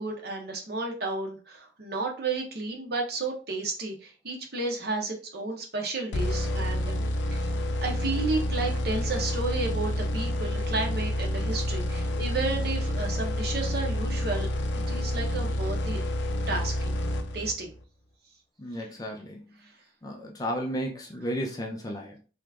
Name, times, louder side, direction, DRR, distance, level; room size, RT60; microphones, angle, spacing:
voice 1, 0.0-7.0 7.3-7.5 7.8-14.5 14.9-16.0 16.5-17.0 17.3-17.7 18.8-18.9, right 3 dB, 60° right, 1 dB, 1.0 m, -32 dB
sound 1, 6.1-17.8, left 1 dB, 75° left, 0.4 m, -29 dB
voice 2, 18.6-19.4 20.0-22.2, equal, 20° left, 1 dB, 0.4 m, -33 dB
2.9 x 2.4 x 3.5 m, 0.35 s
head